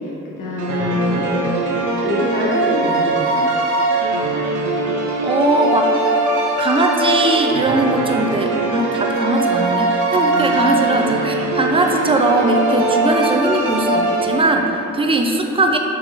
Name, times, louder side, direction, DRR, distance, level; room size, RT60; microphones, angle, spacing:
voice 1, 0.0-1.5 2.0-3.5 10.3-10.5, left 2 dB, 80° left, -6 dB, 0.8 m, -24 dB
sound 1, 0.6-14.9, right 2 dB, 70° right, 0.5 m, -20 dB
voice 2, 5.2-5.9 6.6-15.8, right 2 dB, 15° right, 3 dB, 0.4 m, -19 dB
3.7 x 2.9 x 3.3 m, 2.9 s
supercardioid pair, 40°, 32 cm